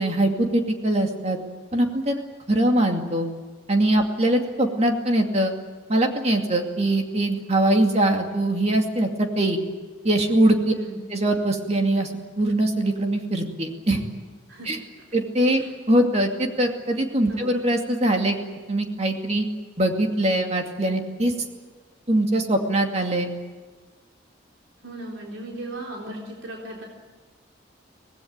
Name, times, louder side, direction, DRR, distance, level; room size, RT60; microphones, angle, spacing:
voice 1, 0.0-1.4 1.7-2.2 2.5-3.3 3.7-5.5 5.9-9.6 10.0-10.7 11.1-12.1 12.4-14.0 14.7-14.8 15.1-18.4 18.7-19.5 19.8-21.3 22.1-23.3, right 1 dB, 35° right, 3 dB, 2.5 m, -22 dB
voice 2, 24.8-26.8, right 1 dB, 90° right, -2 dB, 3.8 m, -37 dB
25.0 x 18.5 x 8.9 m, 1.4 s
head